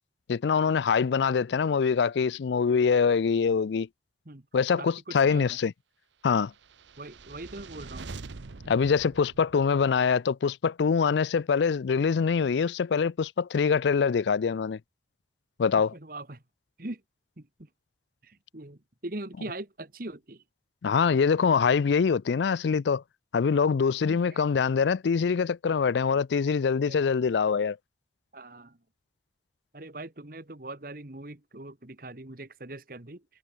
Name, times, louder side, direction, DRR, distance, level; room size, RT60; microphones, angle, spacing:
voice 1, 0.3-3.9 4.5-5.7 6.2-6.5 8.7-14.8 15.6-15.9 20.8-23.0 23.3-27.8, left 6 dB, 75° left, 0.4 m, -24 dB
voice 2, 4.7-5.6 7.0-8.1 15.7-16.4 16.8-17.0 17.4-17.7 18.2-20.4 24.0-24.4 26.8-27.0 28.3-28.8 29.7-33.2, right 2 dB, 50° right, 1.7 m, -41 dB
sound 1, 6.5-10.0, right 3 dB, 85° right, 0.9 m, -44 dB
head